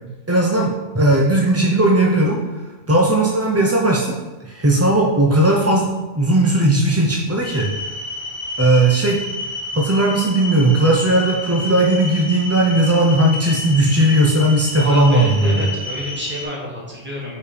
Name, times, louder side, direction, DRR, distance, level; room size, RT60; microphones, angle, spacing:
voice 1, 0.3-2.4 2.9-4.2 4.4-7.7 8.6-9.2 9.7-15.7, right 1 dB, 25° right, -1 dB, 0.3 m, -17 dB
sound 1, 7.4-16.4, left 2 dB, 25° left, 1.4 m, -30 dB
voice 2, 14.8-17.4, left 1 dB, 10° right, -4 dB, 1.5 m, -29 dB
5.2 x 4.6 x 5.0 m, 1.2 s
omnidirectional pair, 1.3 m